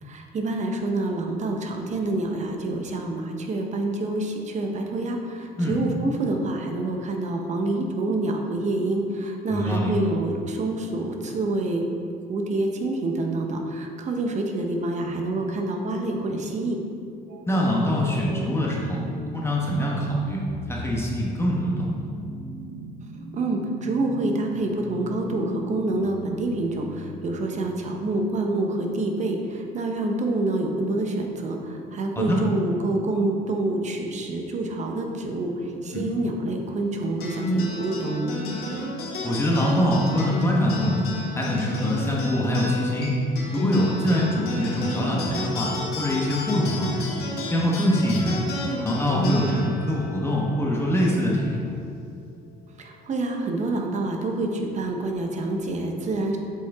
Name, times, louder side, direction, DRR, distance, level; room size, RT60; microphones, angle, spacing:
voice 1, 0.0-11.8 12.3-16.8 23.3-38.3 52.8-56.4, right 2 dB, 45° right, 2 dB, 0.9 m, -27 dB
voice 2, 9.5-9.9 17.4-19.0 19.3-20.4 20.7-22.1 32.2-32.4 35.8-36.0 39.2-41.0 41.3-43.2 43.5-45.7 46.0-47.1 47.4-48.4 48.8-51.7, left 1 dB, 15° left, -4 dB, 1.0 m, -24 dB
sound 1, 17.3-27.4, equal, 70° right, 1.0 m, -38 dB
sound 2, 37.2-51.9, left 1 dB, 70° left, 1.6 m, -31 dB
7.5 x 4.7 x 3.5 m, 2.4 s
cardioid pair, 110°, 17 cm